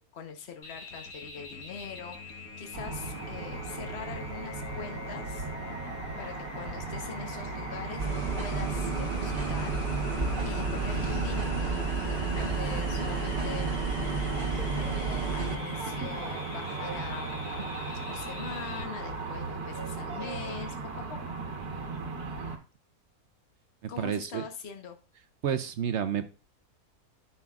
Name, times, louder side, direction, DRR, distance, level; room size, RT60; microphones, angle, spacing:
voice 1, 0.0-5.5 6.2-10.1 10.4-13.7 14.8-20.7 21.1-21.4 23.9-25.0, left 6 dB, 45° left, 5 dB, 1.3 m, -43 dB
sound 1, 0.6-18.8, left 3 dB, 70° left, 1.8 m, -45 dB
sound 2, 2.7-22.6, right 3 dB, 80° right, 1.8 m, -37 dB
sound 3, 8.0-15.6, right 4 dB, 35° right, 1.3 m, -31 dB
voice 2, 24.0-24.4 25.4-26.3, right 8 dB, 60° right, 11 dB, 0.8 m, -30 dB
12.5 x 5.7 x 2.4 m, 0.34 s
omnidirectional pair, 1.6 m